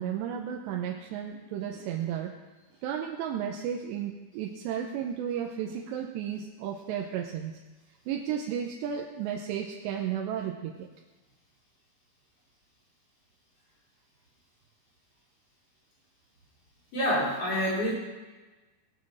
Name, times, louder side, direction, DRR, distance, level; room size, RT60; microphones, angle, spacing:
voice 1, 0.0-2.4 2.8-7.6 8.1-10.9, right 9 dB, 90° right, 1 dB, 3.1 m, -33 dB
voice 2, 16.9-17.9, equal, 35° left, -5 dB, 5.2 m, -27 dB
19.5 x 7.5 x 6.2 m, 1.2 s
omnidirectional pair, 4.9 m